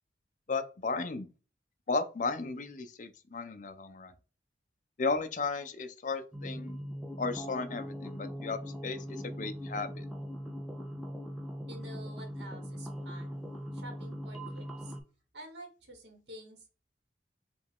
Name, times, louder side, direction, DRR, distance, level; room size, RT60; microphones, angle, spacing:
voice 1, 0.5-1.3 1.9-4.1 5.0-6.8 7.2-10.1, left 4 dB, 45° left, 0.5 m, -35 dB
sound 1, 6.3-15.0, equal, ahead, 0.5 m, -40 dB
voice 2, 11.7-13.5 13.7-14.9 15.3-16.7, right 1 dB, 80° right, 1.3 m, -49 dB
5.0 x 2.4 x 3.5 m
head